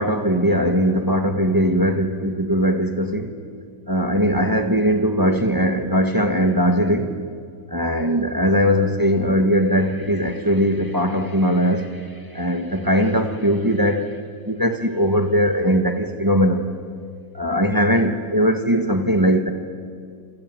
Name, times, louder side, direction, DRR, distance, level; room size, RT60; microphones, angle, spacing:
voice 1, 0.0-3.3 3.9-7.1 7.7-14.1 14.5-16.7 17.3-19.5, equal, 10° right, 1.3 m, -20 dB
27.5 x 26.5 x 7.8 m
omnidirectional pair, 2.1 m